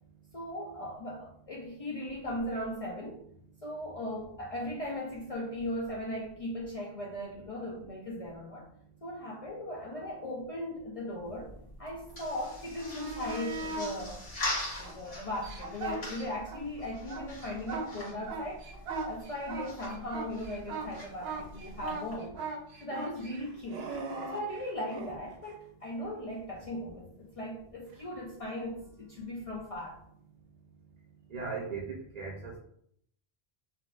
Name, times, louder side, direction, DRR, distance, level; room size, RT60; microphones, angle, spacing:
voice 1, 0.3-3.2 3.6-8.7 9.0-11.5 11.8-14.2 14.8-18.7 19.1-22.4 22.8-24.0 24.3-30.0, left 1 dB, 55° left, -3 dB, 0.4 m, -38 dB
sound 1, 11.2-22.2, left 1 dB, 75° left, 1.5 m, -42 dB
sound 2, 12.7-13.9 14.5-16.6 16.9-25.1 27.9-28.0, right 3 dB, 75° right, 0.8 m, -39 dB
voice 2, 31.3-32.6, right 4 dB, 50° right, -2 dB, 0.5 m, -37 dB
3.5 x 2.4 x 2.3 m, 0.68 s
omnidirectional pair, 1.1 m